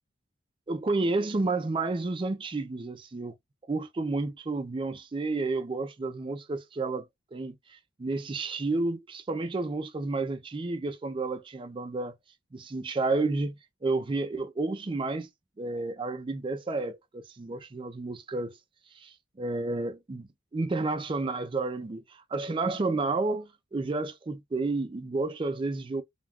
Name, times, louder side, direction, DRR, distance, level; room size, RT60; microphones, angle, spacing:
voice 1, 0.7-3.3 3.7-12.2 12.5-15.3 15.6-18.6 18.9-19.1 19.4-26.0, right 3 dB, 25° right, 0.4 m, -31 dB
2.3 x 2.2 x 3.4 m
head